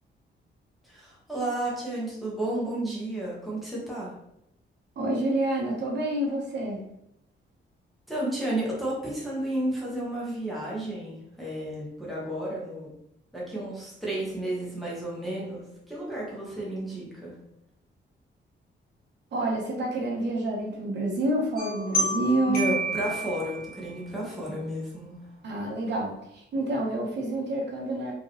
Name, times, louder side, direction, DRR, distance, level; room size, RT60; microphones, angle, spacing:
voice 1, 0.8-4.1 8.1-12.9 13.3-17.3 22.4-25.2, right 1 dB, ahead, -6 dB, 1.3 m, -32 dB
voice 2, 5.0-6.8 19.3-22.7 25.4-28.1, right 1 dB, 60° right, -1 dB, 1.0 m, -28 dB
sound 1, 21.6-24.0, right 1 dB, 50° left, 1.5 m, -30 dB
5.1 x 3.0 x 3.0 m, 0.80 s
wide cardioid pair, 175°, 20 cm